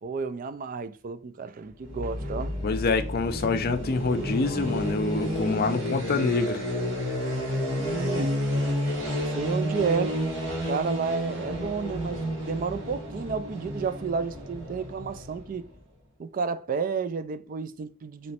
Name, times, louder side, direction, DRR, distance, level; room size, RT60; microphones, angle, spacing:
voice 1, 0.0-2.5 7.8-8.4 8.9-10.2 10.6-15.7 16.2-18.3, right 5 dB, 40° right, 0.3 m, -31 dB
sound 1, 1.8-15.7, equal, 60° right, 2.1 m, -30 dB
voice 2, 2.6-6.6, left 4 dB, 50° left, 0.5 m, -26 dB
3.1 x 3.0 x 4.2 m
head